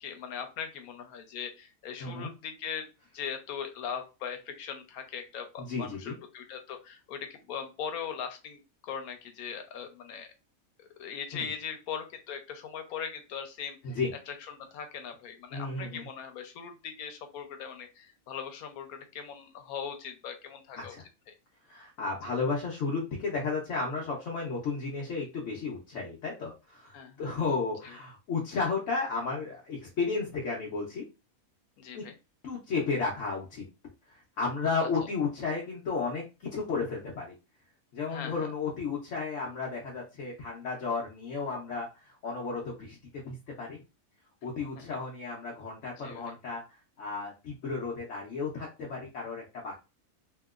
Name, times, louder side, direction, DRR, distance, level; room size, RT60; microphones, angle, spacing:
voice 1, 0.0-2.9 3.1-10.3 10.8-14.0 14.3-20.9 26.9-27.3 31.8-32.1 34.8-34.9 38.0-38.5 44.8-44.9 45.8-46.4, left 7 dB, 90° left, 7 dB, 1.1 m, -40 dB
voice 2, 2.0-2.3 5.6-6.1 11.3-11.5 13.8-14.1 15.5-16.1 20.8-21.0 21.6-31.1 31.9-32.1 32.4-33.6 34.0-36.2 36.5-37.4 37.9-43.8 44.4-49.7, left 4 dB, 65° left, -3 dB, 1.0 m, -33 dB
2.9 x 2.8 x 2.3 m, 0.29 s
omnidirectional pair, 1.5 m